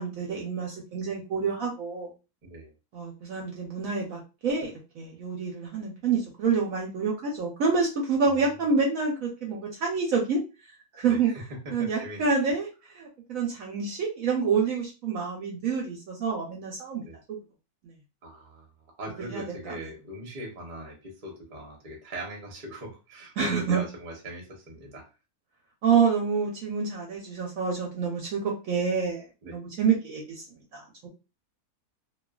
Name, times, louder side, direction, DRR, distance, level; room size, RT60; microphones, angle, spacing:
voice 1, 0.0-2.1 2.9-10.4 11.0-11.3 11.7-12.7 13.0-17.0 17.3-17.4 19.3-19.7 23.4-23.8 25.8-30.5 30.7-31.1, right 5 dB, 65° right, -1 dB, 0.9 m, -27 dB
voice 2, 2.4-2.7 8.2-8.7 11.0-12.3 17.0-17.2 18.2-18.7 19.0-25.1 29.4-29.6, right 1 dB, 40° right, 0 dB, 0.8 m, -40 dB
2.6 x 2.4 x 2.3 m, 0.29 s
omnidirectional pair, 1.7 m